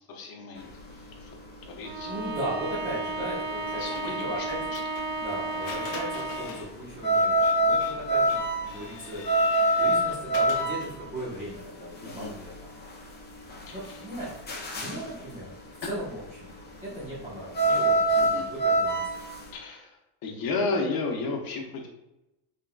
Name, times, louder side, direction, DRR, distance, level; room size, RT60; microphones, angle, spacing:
voice 1, 0.0-1.3 1.7-2.3 3.7-4.5 4.7-4.8 12.0-12.3 13.7-14.0 15.8-15.9 18.2-18.4 19.5-21.9, left 3 dB, 50° left, 1 dB, 1.0 m, -33 dB
sound 1, 0.6-19.5, right 1 dB, 20° left, 0.7 m, -27 dB
Bowed string instrument, 1.8-6.7, right 2 dB, 55° right, 0.6 m, -33 dB
voice 2, 2.0-4.7 5.2-9.3 9.8-12.7 13.7-14.3 14.7-15.5 15.9-16.5 16.8-19.1, right 1 dB, 15° right, -8 dB, 1.0 m, -37 dB
Printer, 3.8-11.0, left 5 dB, 75° left, 0.9 m, -44 dB
3.9 x 3.7 x 2.3 m, 0.94 s
cardioid pair, 125°, 46 cm